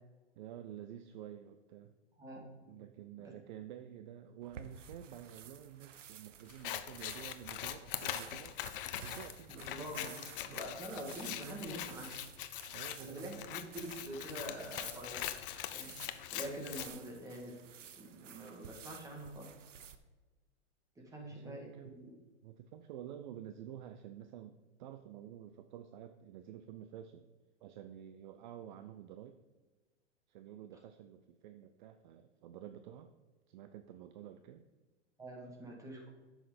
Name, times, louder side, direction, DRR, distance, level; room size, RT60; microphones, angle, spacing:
voice 1, 0.4-2.0 2.6-8.6 9.0-10.6 12.7-13.2 21.1-22.0 22.4-27.2 27.6-29.4 30.3-33.1 33.5-34.6, right 10 dB, 40° right, 9 dB, 0.6 m, -50 dB
sound 1, 4.4-20.0, right 8 dB, 90° right, 0.9 m, -54 dB
Scissors, 6.5-16.9, left 12 dB, 50° left, 0.7 m, -43 dB
voice 2, 9.5-10.0 10.5-12.1 13.0-15.2 15.7-15.9 16.3-17.6 18.0-19.5 21.1-21.7 22.0-22.2 35.2-36.1, right 1 dB, 10° right, -1 dB, 1.9 m, -45 dB
9.4 x 6.4 x 5.1 m, 1.3 s
hypercardioid pair, 140°, 36 cm